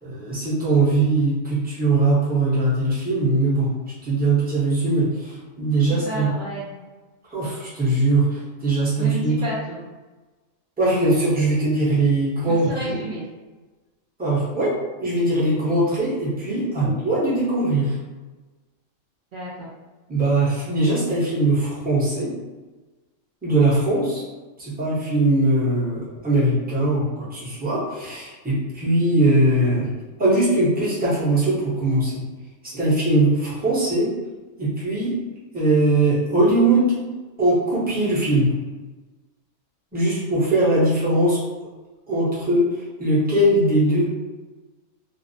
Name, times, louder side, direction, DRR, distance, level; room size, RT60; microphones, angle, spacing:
voice 1, 0.0-3.7 4.0-6.3 7.3-9.4 10.8-13.0 14.2-14.7 15.0-17.9 20.1-22.3 23.4-24.2 24.6-29.9 30.2-32.2 32.7-34.1 34.6-35.1 35.5-36.9 37.4-38.5 39.9-41.4 42.1-42.7 43.0-44.1, right 2 dB, 10° right, -9 dB, 0.5 m, -20 dB
voice 2, 5.8-6.7 9.0-9.8 12.4-13.3 16.8-16.9 19.3-19.7, right 1 dB, 75° right, -7 dB, 0.4 m, -31 dB
2.5 x 2.0 x 2.6 m, 1.2 s
omnidirectional pair, 1.4 m